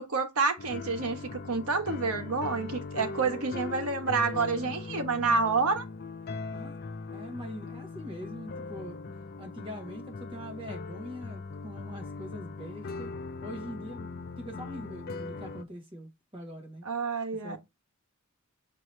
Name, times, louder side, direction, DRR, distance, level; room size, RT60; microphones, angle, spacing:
voice 1, 0.0-5.9 16.8-17.6, right 4 dB, 80° right, 1.1 m, -28 dB
sound 1, 0.6-15.6, left 4 dB, 45° left, 0.4 m, -40 dB
voice 2, 7.1-9.0 9.4-16.9 17.4-17.6, equal, 25° right, 1.3 m, -43 dB
6.0 x 2.8 x 3.1 m
head